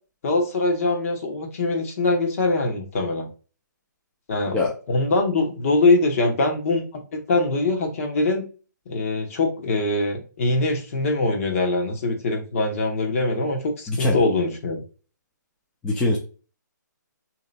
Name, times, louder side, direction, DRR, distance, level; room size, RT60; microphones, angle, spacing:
voice 1, 0.2-3.3 4.3-4.6 4.9-6.8 7.1-8.4 8.9-14.8, left 2 dB, 45° left, 2 dB, 1.0 m, -23 dB
voice 2, 15.8-16.2, left 2 dB, 10° left, -2 dB, 0.6 m, -22 dB
3.2 x 2.9 x 3.9 m, 0.36 s
hypercardioid pair, 145°, 10 cm